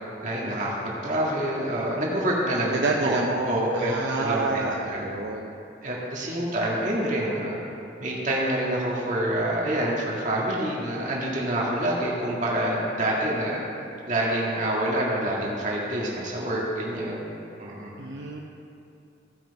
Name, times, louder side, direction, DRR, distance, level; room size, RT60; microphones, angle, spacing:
voice 1, 0.2-3.2 3.4-5.1 5.8-7.6 8.0-13.6 14.0-17.2 17.6-17.9, right 1 dB, 40° right, -4 dB, 1.9 m, -27 dB
voice 2, 2.7-5.5 18.0-18.4, right 3 dB, 65° right, -1 dB, 0.7 m, -28 dB
15.5 x 6.0 x 4.7 m, 2.7 s
head